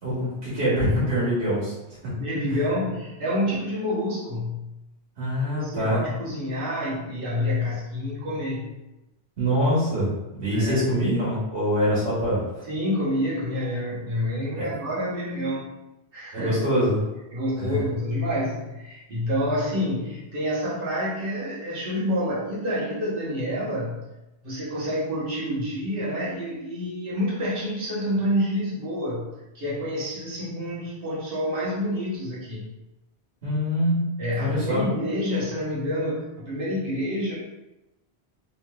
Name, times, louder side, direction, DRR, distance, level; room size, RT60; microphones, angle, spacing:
voice 1, 0.0-1.7 5.2-6.0 9.4-10.1 10.4-12.4 14.5-14.6 16.3-17.0 17.6-17.8 33.4-34.0 34.4-34.9, equal, 90° right, -10 dB, 1.4 m, -24 dB
voice 2, 2.0-4.7 5.5-8.7 10.5-11.0 12.7-15.7 16.1-16.6 17.3-24.0 24.4-29.3 29.5-32.7 34.2-37.3, left 1 dB, 60° right, -7 dB, 1.0 m, -28 dB
3.0 x 2.9 x 2.2 m, 0.97 s
omnidirectional pair, 1.1 m